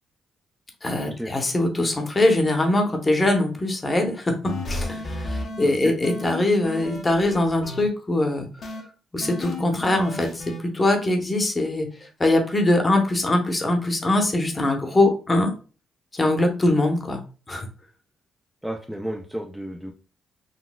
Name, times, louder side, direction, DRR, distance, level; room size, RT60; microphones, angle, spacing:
voice 1, 0.8-4.3 4.7-8.5 9.1-11.9 12.2-15.5 16.1-17.2 17.5-17.7, left 2 dB, 25° left, 3 dB, 0.8 m, -22 dB
sound 1, 4.4-5.6 6.0-7.8 8.6-8.8 9.2-10.6, left 2 dB, 55° left, 0.8 m, -33 dB
voice 2, 5.6-6.0 18.6-19.9, equal, 5° right, 1 dB, 0.4 m, -32 dB
4.0 x 2.2 x 2.2 m, 0.36 s
cardioid pair, 90°, 0 cm